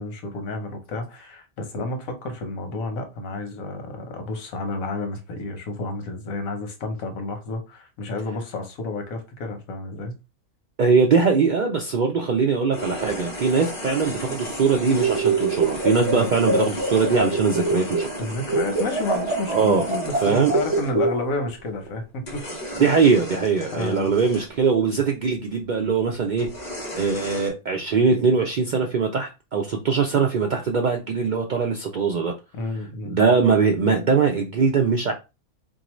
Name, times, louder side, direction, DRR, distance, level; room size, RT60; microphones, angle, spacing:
voice 1, 0.0-10.1 16.1-16.3 18.2-22.4 22.8-22.9 23.7-24.1 32.5-33.2, left 2 dB, 90° left, 1.3 m, -30 dB
voice 2, 10.8-18.3 19.5-19.8 20.2-20.5 22.8-26.7 27.0-32.3 33.1-35.1, right 5 dB, 85° right, 0.4 m, -21 dB
sound 1, 12.7-20.9 21.6-21.9 22.3-24.5 25.5-25.6 26.4-27.5, equal, 35° left, 1.1 m, -35 dB
sound 2, 15.0-18.2 18.5-21.5, right 3 dB, 60° right, 1.0 m, -25 dB
3.9 x 2.7 x 3.0 m
omnidirectional pair, 1.4 m